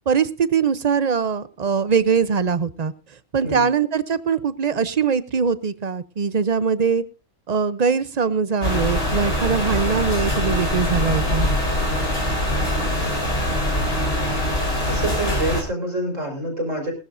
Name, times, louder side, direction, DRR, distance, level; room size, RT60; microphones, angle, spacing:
voice 1, 0.1-2.9 3.3-7.0 7.5-11.5, right 6 dB, 40° right, 15 dB, 0.7 m, -22 dB
sound 1, 8.6-15.6, equal, 50° left, 4.5 m, -23 dB
voice 2, 14.8-16.9, right 1 dB, 75° right, 1 dB, 4.9 m, -27 dB
20.5 x 13.0 x 2.6 m, 0.30 s
omnidirectional pair, 1.3 m